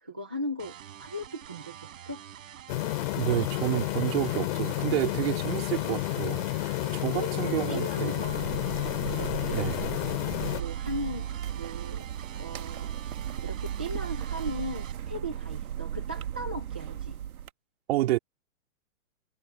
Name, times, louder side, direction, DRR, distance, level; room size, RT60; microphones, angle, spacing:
voice 1, 0.0-2.2 6.8-8.7 10.5-12.1 12.3-13.0 13.4-17.2, equal, 10° right, 0.3 m, -38 dB
sound 1, 0.6-14.9, right 10 dB, 65° right, 6.6 m, -47 dB
sound 2, 2.7-10.6, left 22 dB, 35° left, 2.6 m, -31 dB
voice 2, 3.2-8.2 9.5-9.8 17.9-18.2, right 15 dB, 45° right, 3.4 m, -29 dB
sound 3, 8.1-17.5, right 10 dB, 85° right, 1.6 m, -36 dB
hypercardioid pair, 160°, 42 cm